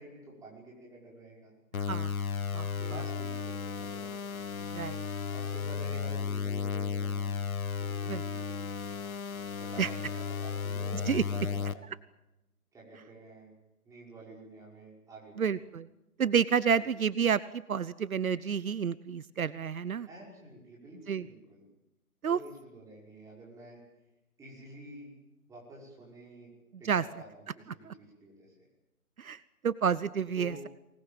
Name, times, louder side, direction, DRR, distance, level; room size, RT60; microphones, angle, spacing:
voice 1, 0.0-1.5 2.7-4.3 5.3-7.4 7.8-8.6 9.6-9.8 10.2-11.9 12.7-13.5 13.8-15.6 16.8-16.9 20.1-21.7 22.3-23.8 24.4-25.1 25.5-26.5 26.8-28.5 30.4-30.6, right 1 dB, 5° right, -3 dB, 5.6 m, -49 dB
sound 1, 1.7-11.7, left 6 dB, 70° left, 1.5 m, -34 dB
voice 2, 1.8-2.1 2.5-2.7 4.7-5.0 8.1-8.2 9.8-9.9 11.1-11.2 15.4-15.9 16.2-20.1 21.1-21.3 22.2-22.4 26.8-27.0 27.9-28.0 29.2-30.6, right 7 dB, 70° right, 17 dB, 1.0 m, -29 dB
24.5 x 20.0 x 9.0 m, 0.95 s
figure-of-eight pair, 150°, 44 cm